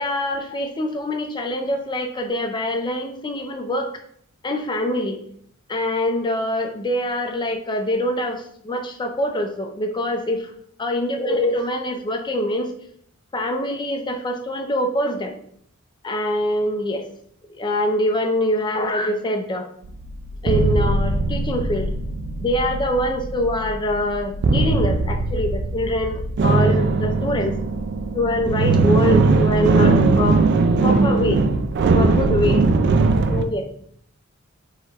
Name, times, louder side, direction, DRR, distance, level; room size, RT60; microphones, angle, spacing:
voice 1, 0.0-3.9 4.4-5.2 5.7-10.5 10.8-12.7 13.3-15.4 16.0-17.0 17.5-19.7 20.4-21.9 22.4-27.6 28.1-30.4 30.8-31.4 31.9-32.6 33.3-33.7, left 1 dB, 20° left, 4 dB, 0.4 m, -24 dB
sound 1, 19.8-33.4, right 3 dB, 55° right, 0.4 m, -20 dB
4.7 x 2.2 x 4.2 m, 0.64 s
head